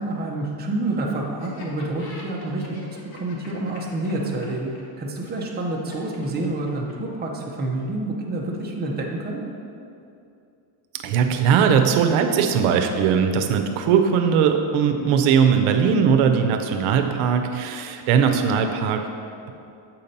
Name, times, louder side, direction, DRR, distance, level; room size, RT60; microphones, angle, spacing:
voice 1, 0.0-4.7 5.0-9.4, right 2 dB, 20° right, -1 dB, 0.6 m, -28 dB
Laughter, 1.4-7.1, left 2 dB, 50° left, 1.1 m, -44 dB
voice 2, 11.0-19.0, right 7 dB, 90° right, 5 dB, 0.7 m, -19 dB
7.5 x 2.8 x 5.2 m, 2.6 s
cardioid pair, 140°, 49 cm